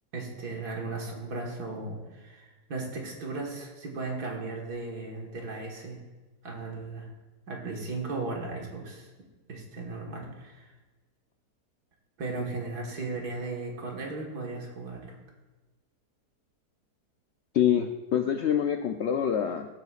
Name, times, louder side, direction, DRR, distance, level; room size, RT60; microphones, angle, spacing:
voice 1, 0.1-6.0 6.4-7.1 7.5-9.1 9.5-10.7 12.2-15.2, right 3 dB, 70° right, 0 dB, 2.1 m, -36 dB
voice 2, 17.5-19.7, left 9 dB, 85° left, 5 dB, 0.6 m, -26 dB
15.5 x 8.0 x 2.4 m, 1.2 s
omnidirectional pair, 1.7 m